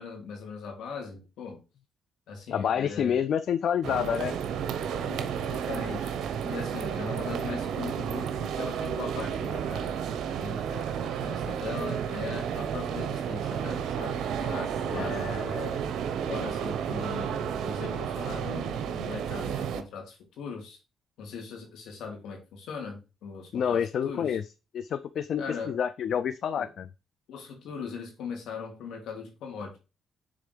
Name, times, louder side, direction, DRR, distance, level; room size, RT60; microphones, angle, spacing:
voice 1, 0.0-1.6 2.3-3.3 5.0-10.1 10.4-14.2 14.9-15.8 16.3-20.8 21.2-24.4 25.4-25.8 26.6-26.7 27.3-29.8, left 5 dB, 80° left, 2 dB, 2.6 m, -40 dB
voice 2, 2.5-4.4 14.4-15.1 23.5-24.4 24.7-26.9, left 8 dB, 65° left, 13 dB, 0.4 m, -28 dB
sound 1, 3.8-19.8, right 8 dB, 80° right, 0.7 m, -32 dB
6.9 x 3.7 x 5.1 m, 0.30 s
cardioid pair, 90°, 0 cm